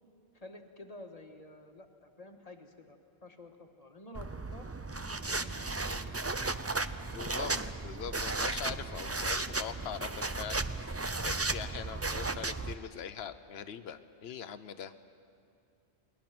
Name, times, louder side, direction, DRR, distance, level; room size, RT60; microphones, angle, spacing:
voice 1, 0.3-4.7 5.1-6.2, left 2 dB, 35° left, 4 dB, 1.6 m, -51 dB
sound 1, 4.2-12.8, right 3 dB, 20° right, 0.4 m, -35 dB
voice 2, 7.1-7.5 7.8-14.9, left 8 dB, 70° left, 11 dB, 1.1 m, -42 dB
29.0 x 21.5 x 6.0 m, 2.6 s
omnidirectional pair, 1.1 m